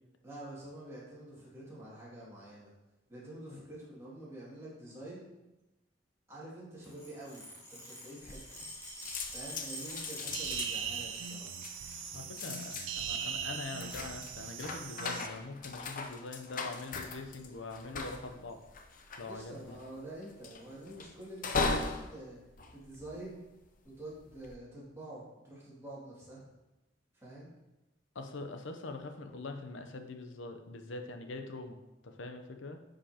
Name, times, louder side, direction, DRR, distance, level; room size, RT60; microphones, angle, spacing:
voice 1, 0.2-2.7 3.1-5.3 6.3-7.4 7.7-8.6 9.3-11.6 19.3-22.4 22.7-23.4 23.8-26.5 27.1-27.5, right 1 dB, 15° right, -7 dB, 2.4 m, -47 dB
sound 1, 6.8-12.7 13.1-13.6 14.4-14.8 15.9-16.2 17.1-17.4 17.7-17.8 18.1-18.2 18.5-19.0 19.6-19.7 20.6-20.7, equal, 15° left, 2.0 m, -48 dB
sound 2, 8.2-8.8 9.0-23.6 24.1-24.5, left 3 dB, 45° left, 0.6 m, -39 dB
sound 3, 10.3-15.3, right 8 dB, 85° right, 0.4 m, -39 dB
voice 2, 12.1-18.6 19.2-19.8 28.1-31.8 32.0-32.8, left 3 dB, 85° left, 6 dB, 0.8 m, -43 dB
9.7 x 5.0 x 2.9 m, 1.0 s
head